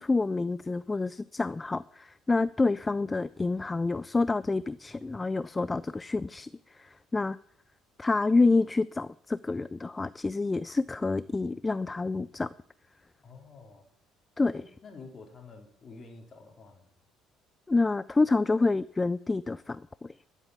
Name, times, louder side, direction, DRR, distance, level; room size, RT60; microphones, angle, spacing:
voice 1, 0.0-6.5 6.8-7.4 8.0-12.5 14.4-14.5 17.7-20.1, left 3 dB, 20° left, 18 dB, 0.4 m, -28 dB
voice 2, 13.2-13.9 14.4-16.9, left 4 dB, 40° left, 2 dB, 3.9 m, -49 dB
12.0 x 8.3 x 7.1 m, 0.64 s
hypercardioid pair, 55°, 0 cm